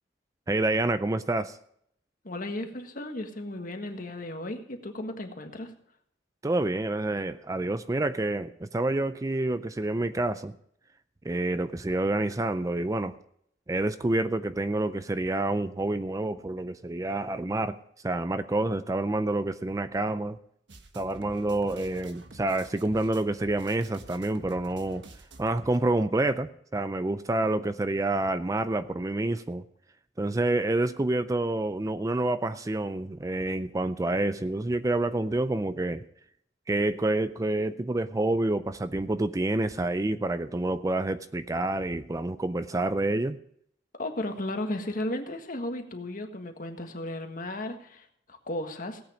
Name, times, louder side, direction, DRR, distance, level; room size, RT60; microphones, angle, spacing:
voice 1, 0.5-1.6 6.4-10.5 11.2-13.1 13.7-17.8 18.0-20.4 21.0-25.0 25.4-29.6 30.2-36.0 36.7-43.4, right 2 dB, 20° right, 12 dB, 0.4 m, -28 dB
voice 2, 2.2-5.7 43.9-49.0, left 1 dB, 45° left, 5 dB, 1.6 m, -35 dB
sound 1, 20.7-25.8, right 2 dB, 75° right, 1.4 m, -49 dB
17.0 x 8.7 x 5.0 m, 0.70 s
head